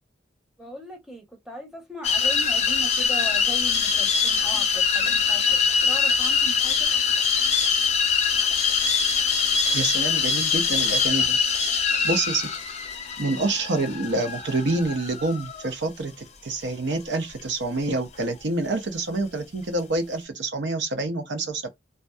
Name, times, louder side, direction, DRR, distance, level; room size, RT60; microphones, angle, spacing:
voice 1, 0.6-5.6 5.9-6.9, equal, ahead, 0.7 m, -38 dB
hob kettle boiling, 2.0-15.7, left 5 dB, 35° left, 0.4 m, -23 dB
voice 2, 9.7-11.4 12.0-12.5 13.2-21.7, right 2 dB, 70° right, 0.7 m, -27 dB
2.6 x 2.2 x 2.2 m
head